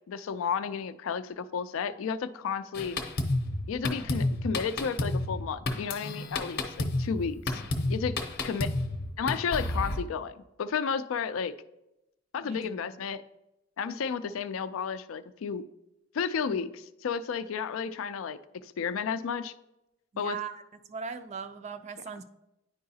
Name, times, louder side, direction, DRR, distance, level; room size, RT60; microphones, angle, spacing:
voice 1, 0.1-3.0 3.7-7.6 7.9-8.2 8.4-8.7 9.2-11.5 12.3-13.2 13.8-15.7 16.1-19.5 20.2-20.4, left 6 dB, 90° left, 13 dB, 0.4 m, -32 dB
Drum kit, 2.7-10.0, left 2 dB, 50° left, 0.7 m, -31 dB
voice 2, 12.4-12.8 20.1-20.6 20.9-22.2, right 6 dB, 35° right, 11 dB, 0.3 m, -39 dB
9.3 x 4.7 x 2.7 m, 0.89 s
head